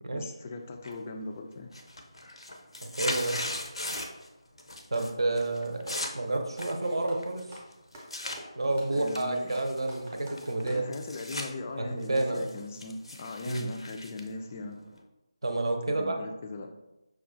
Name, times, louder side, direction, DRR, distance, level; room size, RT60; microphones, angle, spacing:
voice 1, 0.1-1.7 8.9-9.6 10.7-14.8 15.9-16.7, left 3 dB, 25° left, 4 dB, 0.3 m, -39 dB
sound 1, 0.8-1.3 1.6-4.3 4.6-5.1 5.4-8.4 8.9-11.5 11.9-15.0, left 1 dB, 70° left, 0.6 m, -38 dB
voice 2, 2.8-3.4 4.9-7.5 8.6-10.9 11.8-12.5 13.5-13.7 15.4-16.2, right 2 dB, 60° right, 4 dB, 0.6 m, -30 dB
Clapping, 3.9-4.2 4.8-6.1 6.5-6.8 7.1-10.9, equal, 15° right, 0.7 m, -48 dB
5.9 x 2.3 x 2.6 m, 0.97 s
figure-of-eight pair, 160°, 3 cm